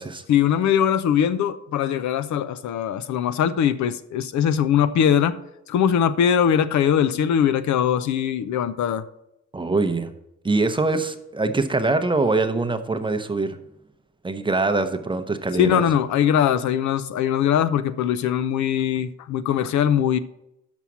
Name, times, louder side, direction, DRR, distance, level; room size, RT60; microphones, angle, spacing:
voice 1, 0.3-5.4 5.7-9.0 15.6-20.2, left 9 dB, 70° left, 13 dB, 0.6 m, -21 dB
voice 2, 9.5-10.1 10.4-13.6 14.2-15.8, right 3 dB, 15° right, 9 dB, 0.7 m, -23 dB
6.1 x 5.6 x 7.1 m, 0.85 s
cardioid pair, 90°, 30 cm